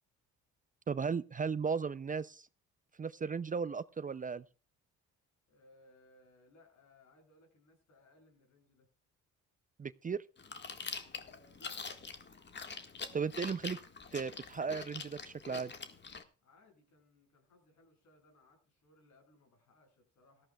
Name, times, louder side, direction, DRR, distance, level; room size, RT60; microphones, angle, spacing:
voice 1, 0.9-2.5 3.0-4.4 9.8-10.2 13.1-13.8 14.1-15.7, right 5 dB, 25° right, 15 dB, 0.5 m, -36 dB
voice 2, 5.5-8.9 11.1-12.0 16.4-20.5, left 2 dB, 70° left, 2 dB, 7.7 m, -65 dB
Chewing mastication, 10.4-16.2, left 5 dB, 35° left, 1.8 m, -45 dB
18.0 x 14.0 x 2.4 m, 0.35 s
cardioid pair, 90°, 30 cm